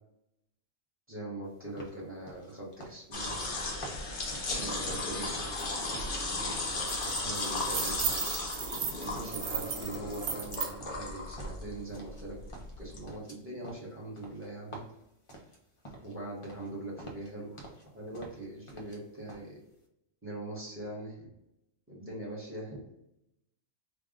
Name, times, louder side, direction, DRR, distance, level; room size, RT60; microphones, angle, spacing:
voice 1, 1.1-3.6 4.7-5.4 6.1-6.9 7.2-7.9 9.0-12.4 12.8-14.8 16.0-17.6 17.9-19.6 20.2-21.3 21.9-22.8, right 1 dB, 10° right, -5 dB, 1.3 m, -42 dB
sound 1, 1.8-5.7 5.9-7.8 8.1-8.9 9.2-10.0 10.3-12.3 12.5-16.2 16.4-16.7 17.0-17.9 18.1-19.0 19.3-19.5, right 1 dB, 35° left, 0.6 m, -49 dB
sound 2, 3.1-13.0, left 2 dB, 50° left, 0.9 m, -35 dB
sound 3, 5.6-5.7 6.0-6.2 6.6-10.7, right 8 dB, 85° right, 0.9 m, -36 dB
3.5 x 2.4 x 3.7 m, 0.83 s
omnidirectional pair, 1.3 m